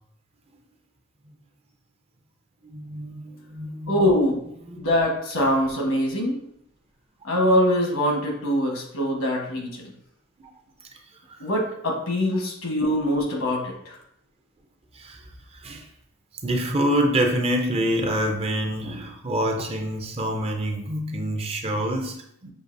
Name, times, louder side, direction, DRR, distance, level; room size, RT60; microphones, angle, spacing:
voice 1, 2.6-4.1 4.6-4.9 10.4-10.5 10.9-11.0 11.3-11.4 14.9-15.9 16.4-22.5, right 1 dB, 30° right, 3 dB, 0.5 m, -27 dB
voice 2, 3.9-4.4 4.8-6.4 7.2-9.9 11.4-14.0, equal, 75° left, 0 dB, 1.2 m, -23 dB
6.4 x 2.8 x 2.6 m, 0.73 s
head